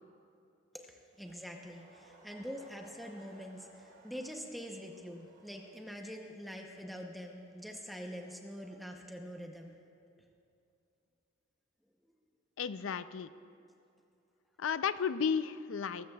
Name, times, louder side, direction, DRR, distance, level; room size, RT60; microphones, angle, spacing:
voice 1, 0.7-9.7, equal, ahead, 1 dB, 0.8 m, -45 dB
Laughter, 1.0-9.6, right 2 dB, 65° right, 2.5 m, -62 dB
voice 2, 12.6-13.3 14.6-16.1, left 6 dB, 70° left, 14 dB, 0.4 m, -33 dB
21.5 x 13.0 x 2.3 m, 2.6 s
head